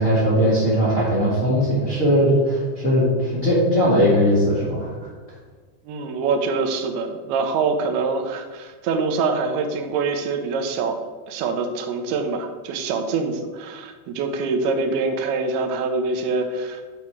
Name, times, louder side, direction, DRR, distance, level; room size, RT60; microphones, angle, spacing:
voice 1, 0.0-4.9, equal, 45° left, -8 dB, 1.0 m, -19 dB
voice 2, 5.9-16.8, right 4 dB, 80° right, 4 dB, 2.3 m, -25 dB
9.7 x 4.3 x 4.7 m, 1.4 s
omnidirectional pair, 5.3 m